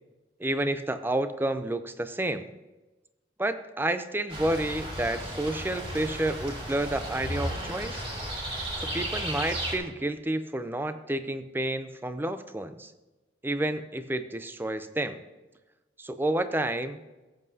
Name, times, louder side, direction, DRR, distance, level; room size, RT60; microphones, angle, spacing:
voice 1, 0.4-2.5 3.4-8.0 8.8-12.9 13.4-15.2 16.0-17.0, right 1 dB, 10° right, 10 dB, 0.6 m, -30 dB
sound 1, 4.3-9.8, right 1 dB, 35° right, 2.8 m, -34 dB
15.5 x 7.7 x 2.8 m, 1.1 s
head